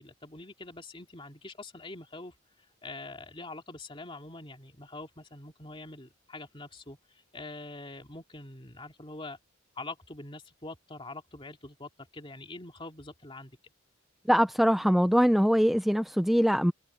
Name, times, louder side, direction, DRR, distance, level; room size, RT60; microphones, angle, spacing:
voice 1, 0.0-2.3 2.8-7.0 7.3-9.4 9.8-13.6, left 2 dB, 25° left, 2.7 m, -44 dB
voice 2, 14.3-16.7, equal, ahead, 0.5 m, -23 dB
head